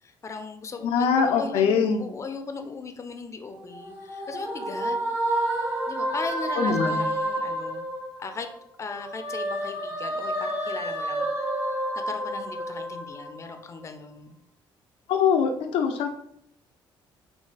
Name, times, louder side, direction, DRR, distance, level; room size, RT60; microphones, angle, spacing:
voice 1, 0.0-5.0 5.3-7.9 8.2-8.5 8.8-11.5 12.0-14.4, left 4 dB, 30° left, 7 dB, 0.6 m, -38 dB
voice 2, 0.8-2.0 6.6-7.0 15.1-16.1, left 6 dB, 90° left, 5 dB, 0.7 m, -23 dB
sound 1, 3.5-8.5 8.9-13.6, right 1 dB, 20° right, 0.9 m, -30 dB
5.5 x 2.8 x 3.3 m, 0.72 s
cardioid pair, 115°, 9 cm